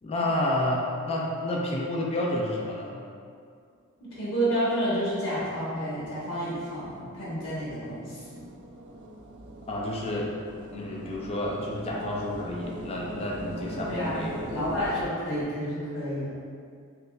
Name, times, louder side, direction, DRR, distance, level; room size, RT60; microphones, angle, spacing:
voice 1, 0.0-3.0 9.7-10.3 10.7-14.4, left 1 dB, 30° left, -2 dB, 0.3 m, -30 dB
voice 2, 4.0-8.5 13.9-16.3, equal, 70° left, -9 dB, 1.0 m, -30 dB
sound 1, 5.1-15.0, right 1 dB, 55° right, 0.3 m, -41 dB
3.6 x 2.9 x 2.2 m, 2.2 s
head